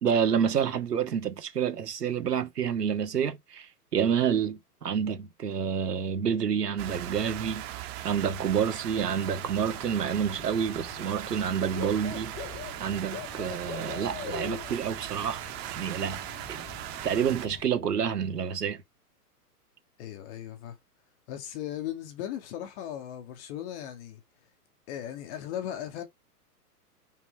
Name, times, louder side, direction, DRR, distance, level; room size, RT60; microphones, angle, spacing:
voice 1, 0.0-7.6 8.0-12.3 12.8-15.4 15.7-16.6 17.0-18.8, right 7 dB, 80° right, 1.9 m, -28 dB
sound 1, 6.8-17.5, right 13 dB, 40° right, 1.5 m, -39 dB
Bird / Cricket, 9.0-17.6, left 8 dB, 20° left, 1.7 m, -44 dB
voice 2, 20.0-20.8 21.3-24.2 24.9-26.0, left 11 dB, 45° left, 2.4 m, -37 dB
5.9 x 5.8 x 5.0 m
hypercardioid pair, 120°, 47 cm